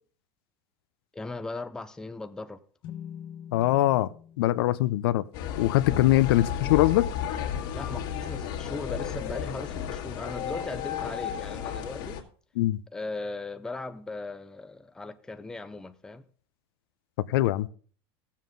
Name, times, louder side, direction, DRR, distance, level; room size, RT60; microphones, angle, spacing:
voice 1, 1.1-2.6 5.9-6.0 7.7-12.2 12.9-16.2, left 3 dB, 5° left, 0.5 m, -38 dB
sound 1, 2.8-6.4, left 9 dB, 40° left, 1.2 m, -46 dB
voice 2, 3.5-4.1 4.4-5.2 5.6-7.1 12.6-12.8 17.3-17.7, left 16 dB, 80° left, 0.5 m, -22 dB
sound 2, 5.3-12.2, left 8 dB, 60° left, 1.9 m, -33 dB
16.0 x 7.3 x 3.8 m
supercardioid pair, 155°, 12 cm